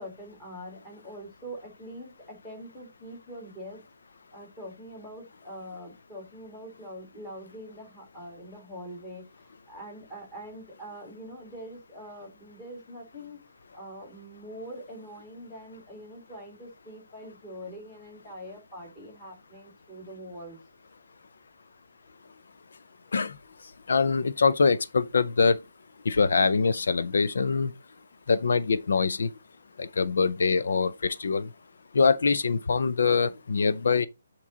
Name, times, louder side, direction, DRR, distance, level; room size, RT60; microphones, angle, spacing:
voice 1, 0.0-3.8 4.3-13.4 13.7-20.6, equal, 10° left, 2.2 m, -43 dB
voice 2, 23.9-25.6 26.1-27.7 28.3-29.3 29.8-31.5 31.9-34.1, left 5 dB, 70° left, 0.5 m, -24 dB
8.4 x 3.0 x 3.9 m
hypercardioid pair, 170°, 0 cm